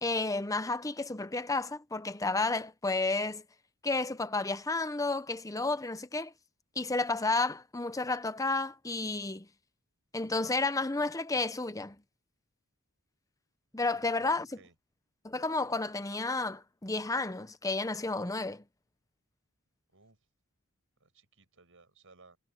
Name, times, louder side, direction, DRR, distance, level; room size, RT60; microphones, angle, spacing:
voice 1, 0.0-3.4 3.8-6.3 6.8-9.5 10.1-12.0 13.7-14.5 15.2-18.6, left 3 dB, 15° left, 0.9 m, -31 dB
voice 2, 13.9-14.7 19.9-20.3 21.0-22.4, right 3 dB, 60° right, 8.0 m, -60 dB
head